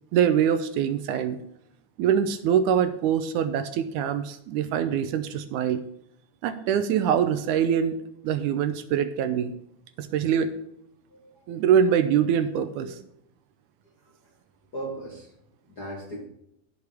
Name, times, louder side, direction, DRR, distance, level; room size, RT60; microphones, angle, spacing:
voice 1, 0.1-1.4 2.0-5.9 6.4-9.5 10.0-10.6 11.5-12.9, right 8 dB, 80° right, 9 dB, 2.0 m, -24 dB
voice 2, 11.1-11.5 12.8-12.9 14.0-14.4 14.7-15.3 15.7-16.2, right 1 dB, 35° left, -3 dB, 1.9 m, -38 dB
16.5 x 6.5 x 3.5 m, 0.78 s
omnidirectional pair, 3.7 m